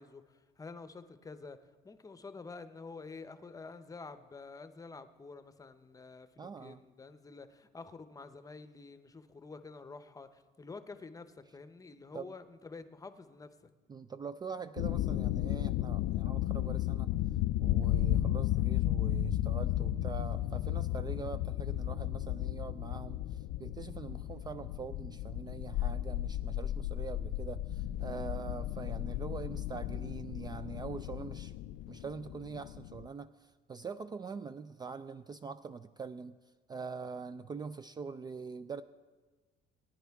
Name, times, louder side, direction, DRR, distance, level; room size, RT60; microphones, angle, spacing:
voice 1, 0.0-1.6 1.8-13.7, left 4 dB, 20° left, 11 dB, 0.7 m, -49 dB
voice 2, 6.4-6.8 12.1-12.3 13.9-17.1 17.6-31.5 31.9-36.4 36.7-38.8, right 5 dB, 25° right, 12 dB, 0.3 m, -43 dB
sound 1, 14.8-33.1, left 14 dB, 80° left, 0.4 m, -34 dB
20.0 x 10.0 x 3.5 m, 1.3 s
cardioid pair, 110°, 17 cm